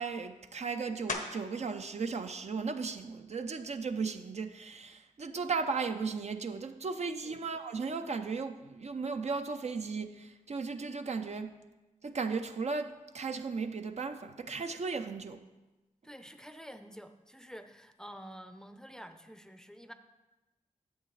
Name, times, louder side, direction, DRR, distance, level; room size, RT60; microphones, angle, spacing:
voice 1, 0.0-11.5 12.0-15.4, right 4 dB, 55° right, 0.5 m, -36 dB
sound 1, 1.1-1.7 2.2-6.7 7.2-12.4 12.6-18.3, left 3 dB, 85° left, 1.0 m, -49 dB
voice 2, 16.0-19.9, equal, 5° left, 0.5 m, -49 dB
10.0 x 7.6 x 3.2 m
cardioid pair, 60°, 14 cm